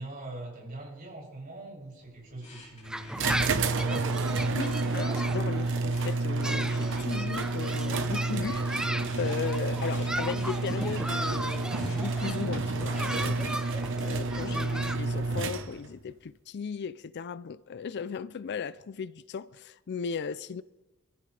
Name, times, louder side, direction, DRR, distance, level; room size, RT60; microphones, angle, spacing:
voice 1, 0.0-3.6, right 2 dB, 45° right, 6.9 m, -42 dB
sound 1, 2.0-12.1, left 3 dB, 35° left, 3.6 m, -55 dB
sound 2, 2.8-15.0, right 1 dB, 5° right, 0.6 m, -37 dB
sound 3, 3.2-16.0, right 3 dB, 60° right, 1.0 m, -30 dB
voice 2, 4.4-8.9 9.2-13.7 14.0-20.6, left 6 dB, 55° left, 0.4 m, -36 dB
25.5 x 14.0 x 3.3 m
head